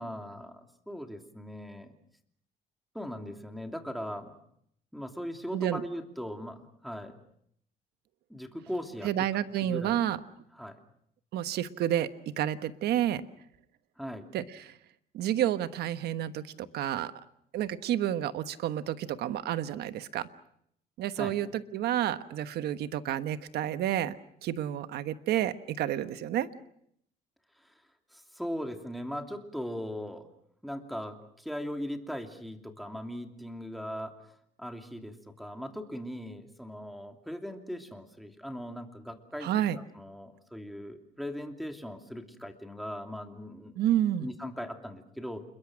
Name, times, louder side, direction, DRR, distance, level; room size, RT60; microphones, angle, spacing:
voice 1, 0.0-2.0 2.9-4.4 4.9-7.2 8.3-9.3 9.6-10.0 10.5-10.8 14.0-14.3 21.2-21.4 27.7-27.8 28.1-30.3 30.6-34.2 34.6-39.5 40.0-43.8 44.2-45.4, equal, ahead, 4 dB, 2.8 m, -39 dB
voice 2, 9.0-10.2 11.3-13.2 14.3-14.8 15.1-17.1 17.5-20.3 21.0-24.2 24.4-26.5 39.4-39.8 43.7-44.3, right 11 dB, 75° right, 11 dB, 1.3 m, -30 dB
28.5 x 22.0 x 6.4 m, 0.71 s
cardioid pair, 110°, 17 cm